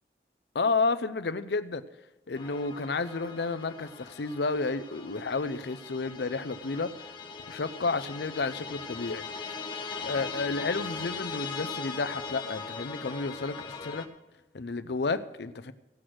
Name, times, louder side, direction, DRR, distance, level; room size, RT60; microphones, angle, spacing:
voice 1, 0.5-1.8 2.3-6.9 7.5-9.2 10.0-14.1 14.5-15.7, left 3 dB, 65° left, 13 dB, 0.6 m, -31 dB
sound 1, 2.3-14.1, left 4 dB, 25° left, 0.9 m, -40 dB
16.5 x 6.1 x 6.3 m, 1.0 s
head